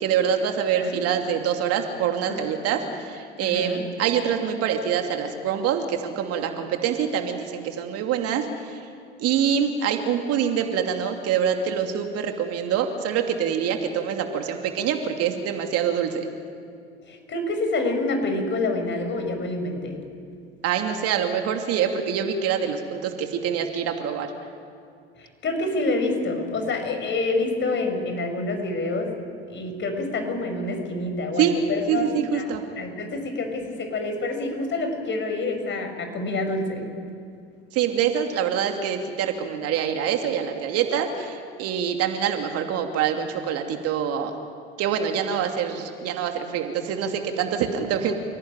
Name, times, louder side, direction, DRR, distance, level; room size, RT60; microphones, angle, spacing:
voice 1, 0.0-8.8 9.2-16.3 20.6-24.3 31.4-31.5 31.9-32.6 37.7-44.3 44.8-48.1, right 8 dB, 50° right, 4 dB, 2.8 m, -25 dB
voice 2, 2.3-2.7 3.4-3.8 17.0-19.9 25.2-29.1 29.5-32.4 32.8-36.8, left 2 dB, 35° left, 6 dB, 6.5 m, -27 dB
29.5 x 18.0 x 9.2 m, 2.3 s
hypercardioid pair, 80°, 32 cm